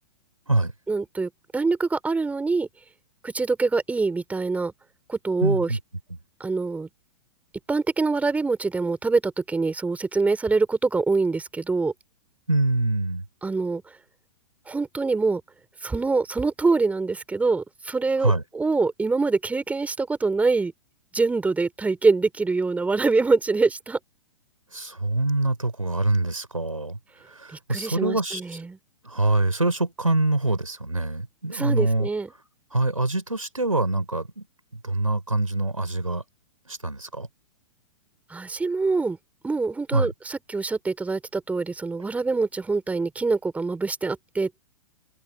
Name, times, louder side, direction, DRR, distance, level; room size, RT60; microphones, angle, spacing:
voice 1, 0.9-2.7 3.2-4.7 5.1-5.7 6.4-6.9 7.7-11.9 13.4-13.8 14.7-15.4 15.8-20.7 21.1-24.0 27.7-28.8 31.5-32.3 38.3-39.2 39.4-44.6, right 3 dB, 10° right, 4.1 m, -24 dB
voice 2, 5.4-5.8 6.1-6.2 12.5-13.2 18.2-18.4 24.7-28.4 29.0-32.1 32.7-34.5 34.7-36.2 36.7-37.3 39.9-40.1, right 2 dB, 90° right, 4.2 m, -25 dB
figure-of-eight pair, 110°, 17 cm